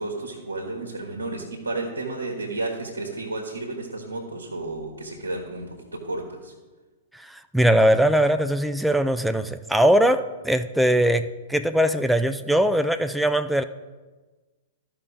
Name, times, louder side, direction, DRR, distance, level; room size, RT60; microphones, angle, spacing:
voice 1, 0.0-6.5, right 2 dB, 80° right, -1 dB, 1.4 m, -32 dB
voice 2, 7.1-13.6, equal, ahead, 9 dB, 0.4 m, -21 dB
13.0 x 5.6 x 3.9 m, 1.3 s
figure-of-eight pair, 105°, 0 cm